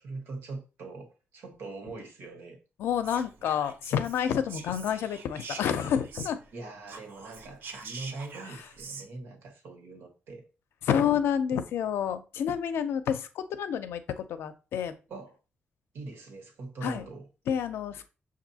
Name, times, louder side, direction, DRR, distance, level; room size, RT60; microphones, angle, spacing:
voice 1, 0.0-2.6 6.5-10.5 15.1-15.4 15.9-17.3, right 3 dB, 80° right, 1.2 m, -42 dB
voice 2, 2.8-6.4 10.8-15.0 16.8-17.0 17.5-18.1, left 8 dB, 85° left, 0.5 m, -29 dB
Whispering, 3.0-6.6 6.8-9.1, right 4 dB, 65° right, 0.6 m, -44 dB
6.0 x 2.6 x 2.7 m
cardioid pair, 130°, 4 cm